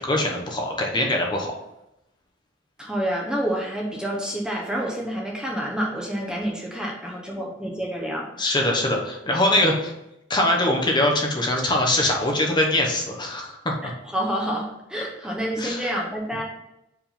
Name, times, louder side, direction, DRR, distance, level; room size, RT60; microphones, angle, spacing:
voice 1, 0.0-1.5 8.4-9.9 10.3-13.9 15.6-15.9, left 1 dB, 25° left, 0 dB, 0.9 m, -23 dB
voice 2, 2.8-8.3 13.8-16.4, equal, 5° right, -2 dB, 0.7 m, -28 dB
4.8 x 3.6 x 5.6 m, 0.86 s
head